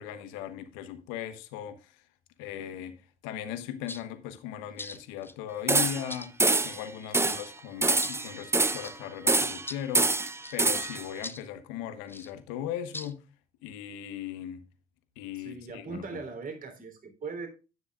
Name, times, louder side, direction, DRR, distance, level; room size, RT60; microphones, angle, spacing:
voice 1, 0.0-2.0 2.4-6.3 6.6-13.2 13.6-14.6 15.2-16.0, left 10 dB, 75° left, 1.2 m, -38 dB
sound 1, 3.9-4.0 4.8-5.3 6.1-6.3 7.2-7.4 8.0-8.2 8.8-9.0 9.7-9.8 10.4-10.6 11.2-11.5 12.1-12.3 12.9-13.1, left 2 dB, 10° left, 0.9 m, -41 dB
sound 2, 5.7-6.1 6.4-6.8 7.1-7.5 7.8-8.9 9.3-9.7 9.9-11.0, right 3 dB, 10° right, 0.7 m, -25 dB
voice 2, 15.3-17.5, right 4 dB, 45° right, 4.0 m, -40 dB
11.0 x 9.6 x 2.4 m
hypercardioid pair, 55°, 21 cm